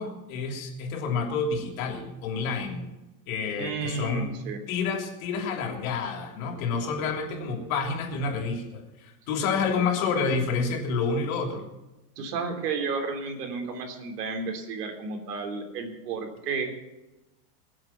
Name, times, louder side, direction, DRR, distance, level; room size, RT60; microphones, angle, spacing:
voice 1, 0.0-2.8 3.3-4.3 4.7-11.6, left 4 dB, 55° left, 3 dB, 3.3 m, -29 dB
voice 2, 3.6-4.6 9.7-9.8 12.2-16.7, right 4 dB, 80° right, 5 dB, 3.4 m, -32 dB
22.0 x 7.8 x 6.0 m, 1.0 s
supercardioid pair, 165°, 48 cm